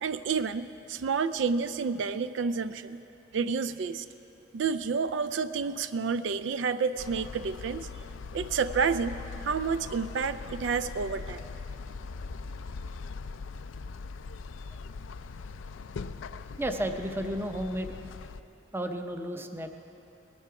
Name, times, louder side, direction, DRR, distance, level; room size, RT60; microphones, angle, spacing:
voice 1, 0.0-3.0 3.3-4.1 4.5-7.9 8.3-11.4, right 5 dB, 70° right, 13 dB, 0.4 m, -30 dB
sound 1, 7.0-18.4, left 4 dB, 85° left, 0.4 m, -41 dB
voice 2, 16.6-17.9 18.7-19.7, right 1 dB, 10° right, 6 dB, 0.6 m, -32 dB
20.0 x 11.5 x 4.8 m, 2.9 s
head